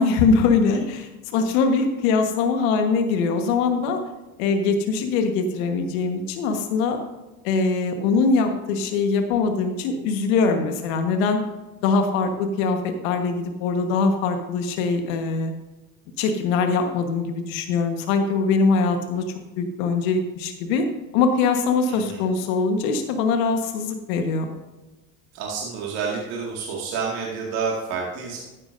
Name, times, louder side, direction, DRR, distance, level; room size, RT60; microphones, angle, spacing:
voice 1, 0.0-4.0 4.4-7.0 7.4-11.4 11.8-15.5 16.2-19.2 19.6-20.9 21.1-24.5, left 4 dB, 75° left, 5 dB, 1.4 m, -22 dB
voice 2, 21.9-22.2 25.3-28.4, right 5 dB, 70° right, -3 dB, 2.2 m, -29 dB
14.0 x 10.0 x 2.6 m, 1.1 s
hypercardioid pair, 70°, 42 cm